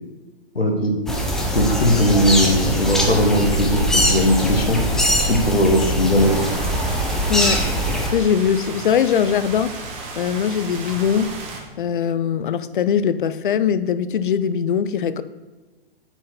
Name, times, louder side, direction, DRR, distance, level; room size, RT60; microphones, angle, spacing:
voice 1, 0.5-0.9 1.5-4.8 5.3-6.4, equal, 85° left, 1.6 m, -18 dB
sound 1, 1.1-8.1, equal, ahead, 0.5 m, -21 dB
sound 2, 6.2-11.6, right 3 dB, 25° right, 1.1 m, -34 dB
voice 2, 7.3-9.9 10.2-11.4 11.8-15.2, left 8 dB, 60° left, 0.5 m, -21 dB
8.8 x 4.6 x 4.3 m
figure-of-eight pair, 120°, 29 cm